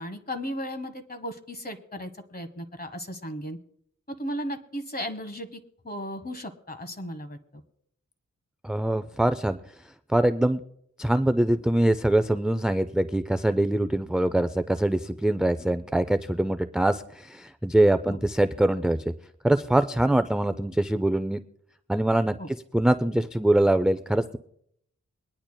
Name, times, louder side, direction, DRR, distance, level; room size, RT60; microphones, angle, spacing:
voice 1, 0.0-3.6 4.1-5.6 5.8-7.6 18.1-18.2 22.4-22.5, equal, 30° left, 8 dB, 1.1 m, -35 dB
voice 2, 8.6-9.6 10.1-10.6 11.0-19.0 19.4-21.4 21.9-24.4, right 1 dB, 5° right, 9 dB, 0.3 m, -23 dB
23.0 x 10.0 x 2.2 m, 0.71 s
wide cardioid pair, 95°, 31 cm